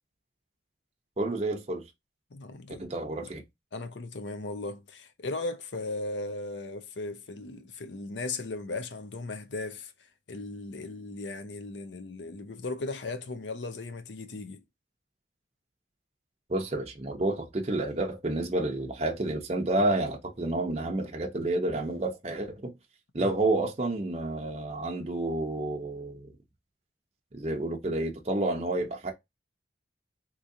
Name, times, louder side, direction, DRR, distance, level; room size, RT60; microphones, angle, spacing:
voice 1, 1.2-1.8 2.8-3.4 16.5-22.8 23.1-26.3 27.3-29.1, right 2 dB, 35° right, 0.6 m, -30 dB
voice 2, 2.3-2.9 3.2-3.3 3.7-9.9 10.3-14.6 23.2-23.3, left 3 dB, 85° left, 0.6 m, -37 dB
3.7 x 3.0 x 2.6 m
head